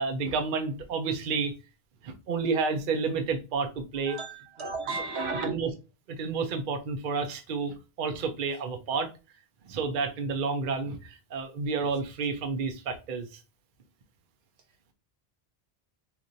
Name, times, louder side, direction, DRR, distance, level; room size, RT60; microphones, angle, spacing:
voice 1, 0.0-1.5 2.0-4.2 4.6-5.0 5.4-5.7 6.1-9.1 9.7-13.4, right 4 dB, 60° right, 0.7 m, -30 dB
voice 2, 4.1-5.5, right 3 dB, 85° right, 1.3 m, -33 dB
4.3 x 2.5 x 2.6 m
omnidirectional pair, 1.1 m